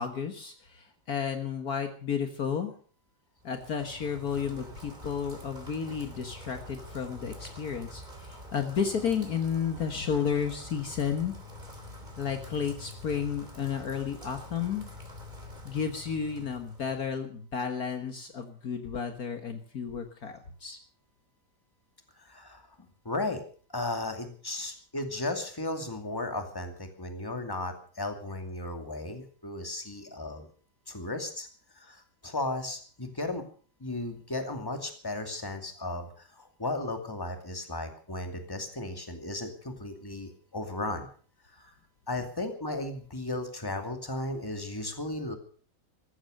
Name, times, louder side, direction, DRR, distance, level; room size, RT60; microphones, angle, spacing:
voice 1, 0.0-2.7 3.4-11.3 12.2-14.9 15.6-20.8 40.9-41.0 42.4-42.5, left 7 dB, 55° left, 7 dB, 1.9 m, -32 dB
Rain, 3.4-17.2, left 1 dB, 25° right, 3.5 m, -46 dB
voice 2, 22.2-23.4 23.7-30.5 30.9-31.5 31.7-33.5 33.8-41.1 41.5-41.7 42.1-45.4, left 2 dB, 10° left, 6 dB, 2.4 m, -35 dB
15.0 x 13.5 x 6.5 m, 0.43 s
omnidirectional pair, 1.9 m